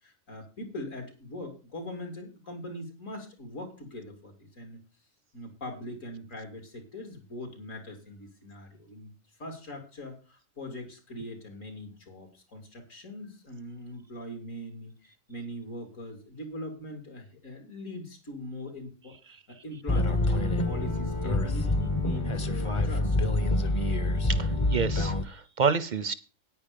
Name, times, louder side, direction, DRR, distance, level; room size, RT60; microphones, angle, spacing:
voice 1, 0.0-4.8 5.3-9.1 9.4-23.2, left 1 dB, 70° left, 3.3 m, -41 dB
sound 1, 19.9-25.2, left 2 dB, 25° left, 0.8 m, -26 dB
voice 2, 24.3-26.1, right 5 dB, 45° right, 0.7 m, -28 dB
9.5 x 9.5 x 5.2 m
omnidirectional pair, 1.4 m